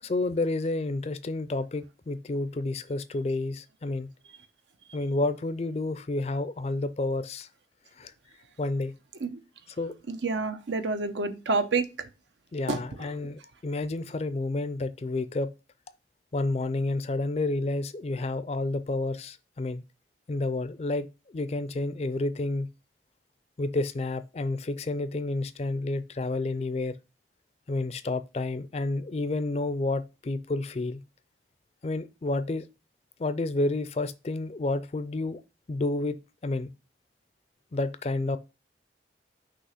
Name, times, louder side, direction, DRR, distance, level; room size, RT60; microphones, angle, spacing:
voice 1, 0.0-4.1 4.9-7.5 8.0-8.1 8.6-8.9 9.8-9.9 12.5-15.5 16.3-19.8 20.3-22.7 23.6-27.0 27.7-31.0 31.8-32.6 33.2-35.4 35.7-36.7 37.7-38.4, left 2 dB, 35° left, 0.4 m, -30 dB
voice 2, 10.1-11.8 12.7-12.8, right 3 dB, 85° right, 0.8 m, -28 dB
6.1 x 2.9 x 5.6 m
head